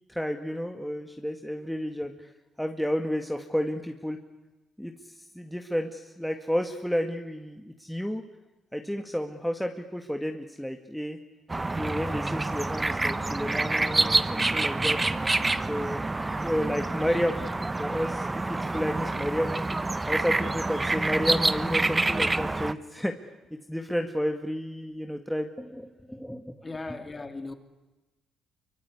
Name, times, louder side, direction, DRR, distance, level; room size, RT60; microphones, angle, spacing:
voice 1, 0.1-2.3 2.6-4.2 4.8-8.2 8.7-11.2 11.8-15.1 15.7-16.1 16.4-17.4 17.8-19.6 20.1-23.2 23.5-26.7, equal, ahead, 1.9 m, -31 dB
sound 1, 11.5-22.7, right 2 dB, 20° right, 1.1 m, -27 dB
voice 2, 26.6-27.5, left 3 dB, 25° left, 3.0 m, -37 dB
25.5 x 24.0 x 9.8 m
cardioid pair, 90°, 0 cm